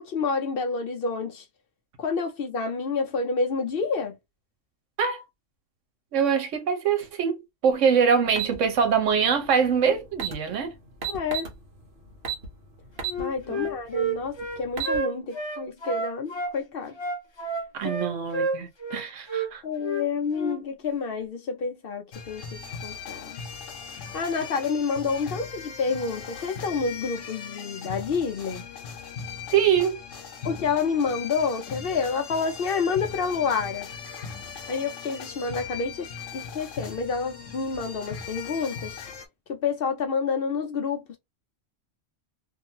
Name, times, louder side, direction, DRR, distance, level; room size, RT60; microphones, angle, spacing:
voice 1, 0.0-1.4 2.0-4.1 11.1-11.5 13.2-17.0 17.8-17.9 19.6-23.4 24.1-28.7 30.4-33.9 34.7-36.1 36.3-38.9 39.5-41.2, left 5 dB, 60° left, 0.7 m, -28 dB
voice 2, 6.1-7.3 7.6-10.7 13.6-13.7 17.7-19.6 29.5-30.0, right 7 dB, 80° right, 1.1 m, -23 dB
sound 1, 8.4-8.6 9.8-9.9 10.1-10.4 11.0-11.5 12.2-12.5 13.0-13.2 13.7-13.8 14.5-15.0, right 8 dB, 55° right, 1.0 m, -30 dB
Wind instrument woodwind instrument, 13.1-16.5 17.0-19.0 19.3-19.5 19.8-20.0 20.3-20.6, right 3 dB, 25° left, 0.7 m, -29 dB
sound 2, 22.1-39.3, left 6 dB, 85° left, 1.1 m, -39 dB
2.6 x 2.5 x 2.7 m
omnidirectional pair, 1.3 m